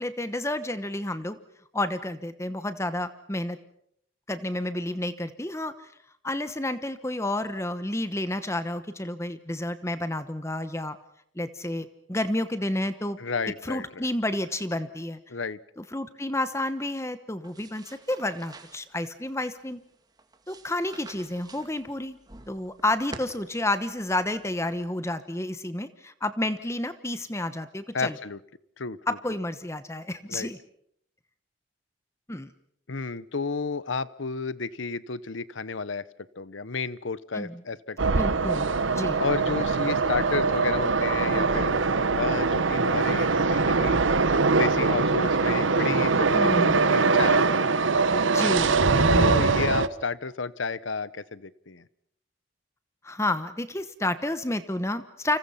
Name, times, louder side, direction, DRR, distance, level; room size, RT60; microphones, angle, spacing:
voice 1, 0.0-1.4 1.7-3.6 4.3-5.9 6.2-11.0 11.4-13.2 13.6-15.2 15.8-19.8 20.5-22.2 22.5-28.2 29.1-30.6 32.3-32.5 37.3-37.6 38.1-39.2 46.3-47.0 48.3-49.4 53.0-55.4, left 1 dB, 15° left, 12 dB, 1.1 m, -30 dB
voice 2, 13.2-14.0 15.3-15.6 27.9-28.4 28.8-29.2 30.3-30.5 32.9-36.0 36.4-38.4 39.2-41.7 42.2-44.0 44.5-47.4 49.1-51.8, left 4 dB, 85° left, 18 dB, 1.0 m, -32 dB
sound 1, 17.4-24.9, right 2 dB, 20° right, 2.3 m, -49 dB
sound 2, 38.0-49.9, right 4 dB, 90° right, 1.0 m, -22 dB
29.5 x 26.5 x 5.7 m, 0.71 s
head